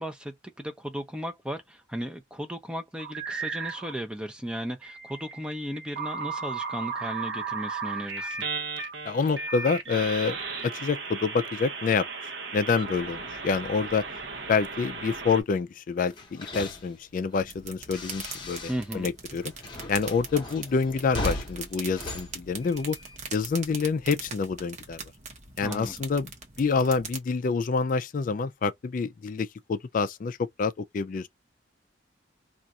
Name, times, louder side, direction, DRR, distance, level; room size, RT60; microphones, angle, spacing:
voice 1, 0.0-8.4 18.7-19.1 25.6-26.0, equal, 5° right, 0.5 m, -35 dB
sound 1, 3.0-3.9 4.8-15.4, right 4 dB, 70° right, 0.9 m, -35 dB
voice 2, 9.1-10.4 10.6-12.1 12.5-14.0 14.5-18.7 18.9-19.5 19.9-23.0 23.3-25.0 25.6-26.3 26.6-31.3, left 5 dB, 45° left, 0.3 m, -27 dB
sound 2, 16.1-19.0 19.3-23.2, left 1 dB, 25° left, 0.9 m, -38 dB
sound 3, 17.4-27.2, right 5 dB, 40° right, 0.9 m, -42 dB
2.5 x 2.4 x 4.0 m
head